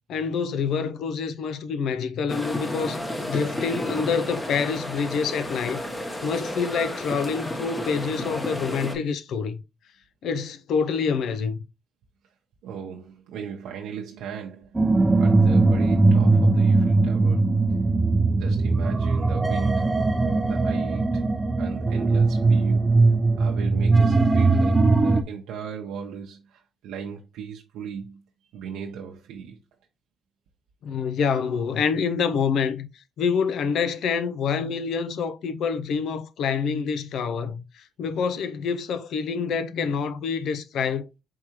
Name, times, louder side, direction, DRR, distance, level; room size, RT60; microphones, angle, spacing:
voice 1, 0.1-5.8 6.2-9.6 10.2-11.6 30.8-41.1, left 6 dB, 75° left, 0.5 m, -27 dB
sound 1, 2.3-8.9, left 1 dB, 15° left, 1.0 m, -32 dB
voice 2, 12.6-14.9 15.2-17.5 18.3-20.2 20.5-21.2 21.6-28.2 28.5-29.6, right 7 dB, 90° right, 0.7 m, -37 dB
sound 2, 14.7-25.2, right 3 dB, 20° right, 0.5 m, -20 dB
4.7 x 3.5 x 2.9 m
cardioid pair, 90°, 0 cm